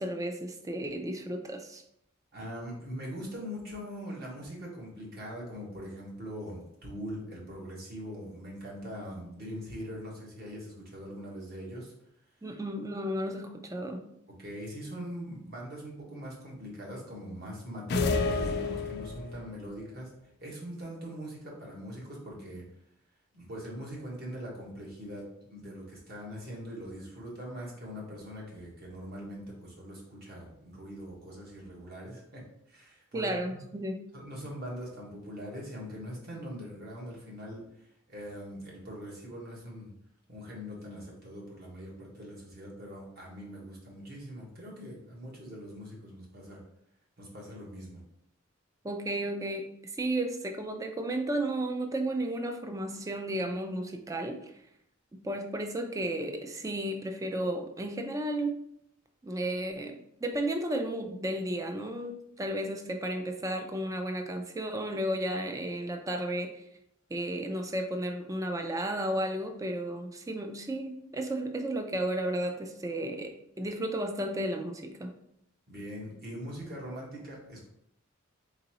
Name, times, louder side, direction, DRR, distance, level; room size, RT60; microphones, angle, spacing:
voice 1, 0.0-1.8 12.4-14.0 33.1-34.0 48.8-54.5 55.1-58.6 59.2-66.6 67.1-75.2, right 1 dB, 15° right, 5 dB, 0.4 m, -33 dB
voice 2, 2.3-11.9 14.4-20.1 20.4-22.6 23.3-33.6 34.1-39.9 40.3-46.6 47.2-48.0 75.7-77.7, equal, 50° right, -3 dB, 1.3 m, -42 dB
sound 1, 17.9-19.5, left 3 dB, 50° left, 0.4 m, -29 dB
4.0 x 3.7 x 2.9 m, 0.75 s
head